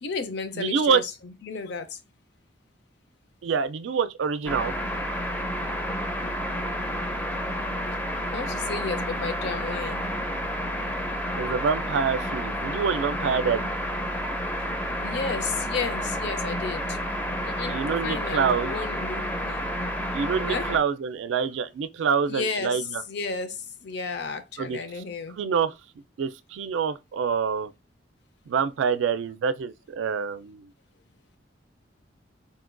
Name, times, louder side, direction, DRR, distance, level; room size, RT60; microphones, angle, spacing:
voice 1, 0.0-2.0 8.3-10.0 15.0-17.0 17.4-19.7 20.5-20.7 22.3-25.4, left 4 dB, 65° left, 0.5 m, -33 dB
voice 2, 0.5-1.0 3.4-4.7 11.4-13.7 17.7-18.7 20.1-23.0 24.6-24.8 25.4-25.7 26.2-27.7 28.5-30.7, right 6 dB, 85° right, 0.3 m, -26 dB
sound 1, 4.5-20.8, equal, 10° left, 0.4 m, -30 dB
4.0 x 2.2 x 2.4 m
head